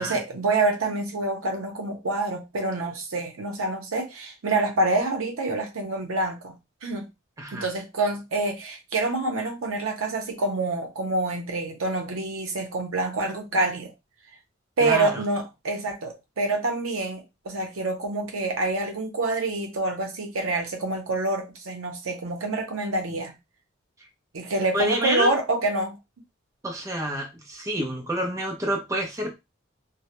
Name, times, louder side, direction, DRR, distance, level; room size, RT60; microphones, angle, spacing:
voice 1, 0.0-6.5 6.8-7.1 7.5-13.9 14.8-23.3 24.3-26.0, right 2 dB, 85° right, 0.6 m, -27 dB
voice 2, 14.8-15.2 24.7-25.3 26.6-29.4, right 1 dB, 15° right, 0.4 m, -28 dB
2.0 x 2.0 x 2.9 m
head